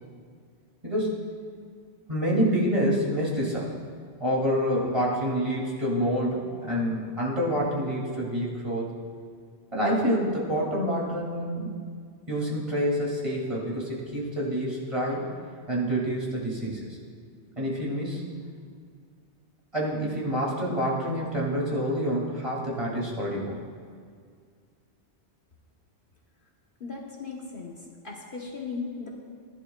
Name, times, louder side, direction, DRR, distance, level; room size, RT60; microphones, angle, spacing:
voice 1, 0.8-1.3 2.1-3.7 4.2-8.9 9.7-11.7 12.3-15.3 15.7-16.9 17.6-18.2 19.7-23.6, equal, 25° right, -5 dB, 2.6 m, -27 dB
voice 2, 26.8-27.8 28.0-29.1, left 4 dB, 50° left, -2 dB, 1.3 m, -37 dB
19.5 x 11.0 x 2.4 m, 2.1 s
omnidirectional pair, 1.1 m